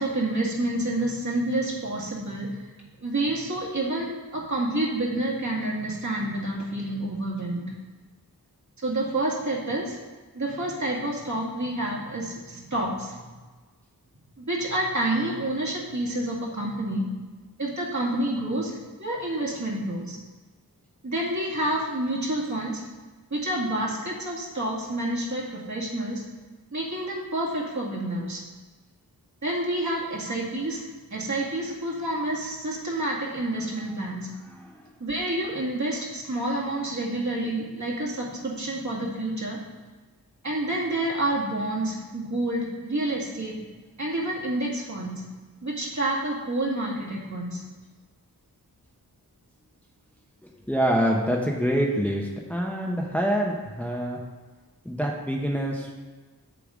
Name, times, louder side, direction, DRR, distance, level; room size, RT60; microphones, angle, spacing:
voice 1, 0.0-2.7 3.0-7.7 8.8-10.0 10.3-13.2 14.4-17.0 17.6-20.2 21.0-22.8 23.3-26.2 26.7-28.4 29.4-34.3 35.0-39.6 40.4-43.6 44.0-45.2 45.6-47.6, right 1 dB, 45° right, -4 dB, 2.0 m, -28 dB
voice 2, 34.5-34.8 50.4-54.2 54.8-55.9, equal, 5° left, -1 dB, 0.9 m, -26 dB
6.9 x 6.9 x 5.0 m, 1.3 s
wide cardioid pair, 75°, 38 cm